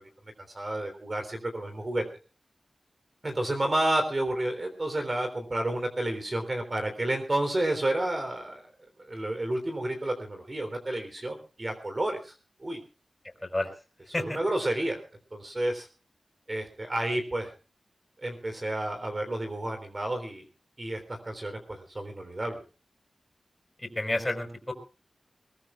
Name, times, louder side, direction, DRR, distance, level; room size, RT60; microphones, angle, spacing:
voice 1, 0.5-2.0 3.2-8.7 9.1-12.3 12.6-12.8 14.2-15.0 15.3-15.9 16.5-17.5 18.2-20.4 20.8-22.6, right 1 dB, 35° right, 5 dB, 3.6 m, -30 dB
voice 2, 23.8-24.7, left 1 dB, 20° left, 5 dB, 4.9 m, -30 dB
21.5 x 21.0 x 2.4 m, 0.33 s
wide cardioid pair, 80°, 0 cm